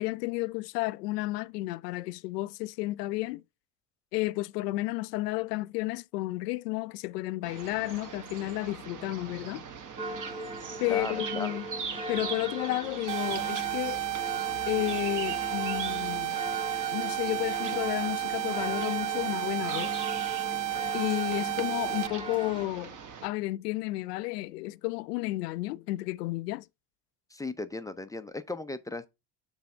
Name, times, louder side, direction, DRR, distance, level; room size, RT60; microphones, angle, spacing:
voice 1, 0.0-3.4 4.1-9.7 10.8-11.7 12.1-14.0 14.7-16.4 16.9-20.0 20.9-23.0 23.2-26.7, left 19 dB, 75° left, 0.6 m, -32 dB
sound 1, 7.4-23.3, right 6 dB, 40° right, 1.3 m, -42 dB
sound 2, 10.0-22.7, right 1 dB, 10° right, 1.3 m, -39 dB
voice 2, 10.8-11.6 27.3-29.1, left 2 dB, 5° left, 0.5 m, -36 dB
sound 3, 13.1-22.1, right 13 dB, 55° right, 0.5 m, -32 dB
7.0 x 3.4 x 5.4 m
hypercardioid pair, 75°, 49 cm